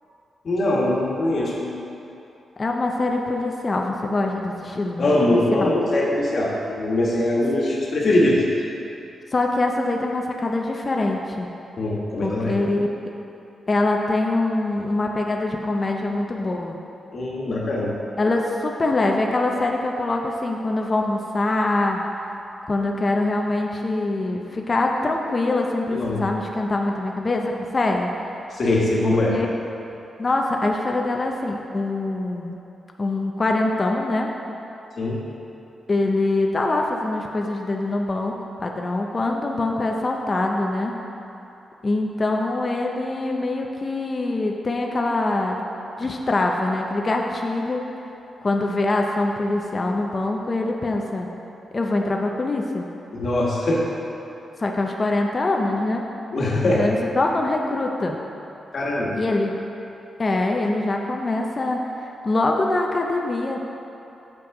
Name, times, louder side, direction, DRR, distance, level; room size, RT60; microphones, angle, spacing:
voice 1, 0.4-1.7 5.0-8.7 11.8-12.6 17.1-17.9 25.9-26.2 28.5-29.4 35.0-35.2 53.1-53.9 56.3-56.9 58.7-59.2, left 1 dB, 45° left, -4 dB, 1.4 m, -22 dB
voice 2, 2.6-5.7 9.3-11.5 12.2-12.9 13.7-16.8 18.2-22.0 22.7-28.1 29.0-29.5 30.2-32.6 33.0-34.3 35.9-41.0 41.8-45.6 46.0-47.9 48.4-51.3 51.7-52.9 54.6-56.0 56.6-58.2 59.1-59.5 60.2-63.6, left 2 dB, 25° left, 1 dB, 0.5 m, -24 dB
7.6 x 6.1 x 4.8 m, 2.9 s
wide cardioid pair, 150°, 0 cm